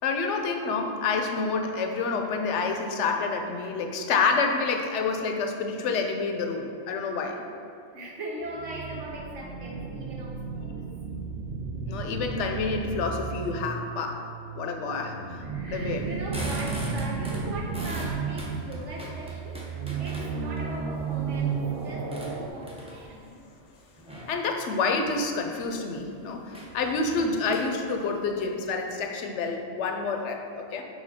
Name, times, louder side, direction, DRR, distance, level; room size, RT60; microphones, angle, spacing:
voice 1, 0.0-7.4 11.1-11.2 11.9-14.2 14.6-16.0 21.6-21.8 24.3-30.8, left 4 dB, 75° left, 3 dB, 0.9 m, -28 dB
voice 2, 7.9-10.9 14.8-19.6 20.0-23.5 26.3-26.4, right 1 dB, 80° right, -1 dB, 1.3 m, -40 dB
sound 1, 8.5-22.5, right 5 dB, 60° right, 0.7 m, -34 dB
sound 2, 16.0-20.6 21.1-23.2 24.0-24.4 24.9-25.2 25.6-25.7 26.0-26.1 26.5-28.5, right 1 dB, 5° right, 0.6 m, -40 dB
5.5 x 4.8 x 4.1 m, 2.5 s
omnidirectional pair, 1.2 m